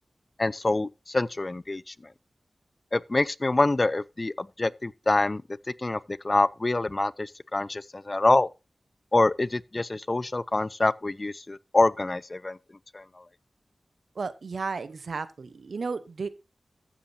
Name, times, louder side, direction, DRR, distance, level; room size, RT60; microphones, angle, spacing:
voice 1, 0.4-1.9 2.9-5.4 5.8-8.5 9.1-12.6 12.9-13.0, left 2 dB, 40° left, 0.4 m, -25 dB
voice 2, 14.1-16.3, right 4 dB, 85° right, 0.8 m, -33 dB
14.5 x 7.2 x 2.7 m
wide cardioid pair, 55°, 0 cm